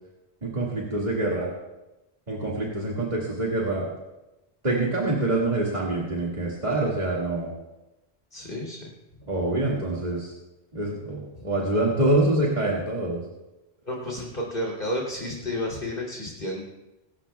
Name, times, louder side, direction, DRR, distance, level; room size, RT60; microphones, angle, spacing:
voice 1, 0.4-1.5 2.3-3.9 4.6-7.5 9.3-10.3 10.7-13.2, right 2 dB, 40° right, -5 dB, 2.3 m, -25 dB
voice 2, 8.3-8.8 11.3-11.5 13.8-16.6, left 1 dB, 55° left, -3 dB, 3.2 m, -31 dB
24.5 x 13.0 x 2.4 m, 1.0 s
omnidirectional pair, 1.1 m